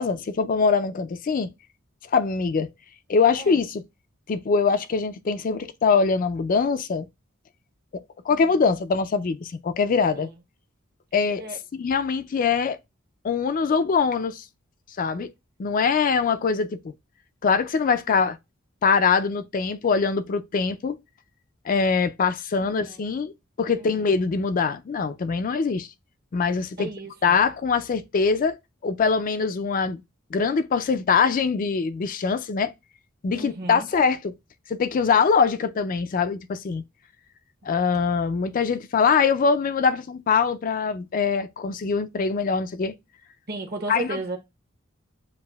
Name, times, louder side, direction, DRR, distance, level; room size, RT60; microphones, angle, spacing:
voice 1, 0.0-1.5 2.1-2.7 3.1-3.8 4.3-7.1 8.3-10.3 11.1-11.4 11.7-12.8 13.2-14.4 15.0-15.3 15.6-16.9 17.4-18.4 18.8-21.0 21.7-23.3 23.6-25.9 26.3-26.9 27.2-28.6 28.8-30.0 30.3-32.7 33.2-34.3 34.7-36.8 37.7-42.9 43.9-44.1, left 5 dB, 40° left, 0.4 m, -23 dB
voice 2, 22.6-23.0 23.8-24.1 26.8-27.4 33.4-33.9 43.5-44.4, right 2 dB, 50° right, 0.9 m, -35 dB
7.3 x 2.5 x 2.2 m
head